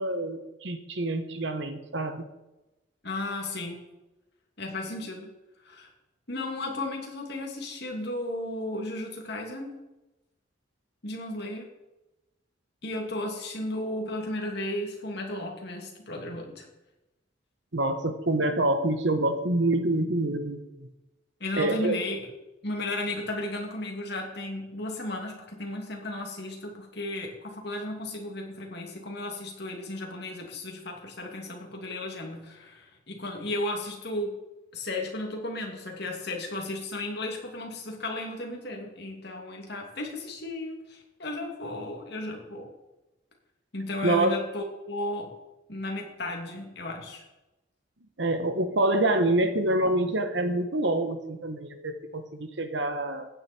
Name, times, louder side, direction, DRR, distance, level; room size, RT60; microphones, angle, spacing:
voice 1, 0.0-2.2 17.7-20.6 21.6-22.0 44.0-44.4 48.2-53.3, right 1 dB, 60° right, 9 dB, 1.3 m, -26 dB
voice 2, 3.0-3.8 4.6-5.3 5.6-5.9 6.3-9.7 11.0-11.7 12.8-16.7 21.4-22.3 22.6-34.4 34.7-42.7 43.7-45.3 45.7-47.2, left 1 dB, 55° left, 1 dB, 2.8 m, -34 dB
15.0 x 9.8 x 4.5 m, 1.0 s
head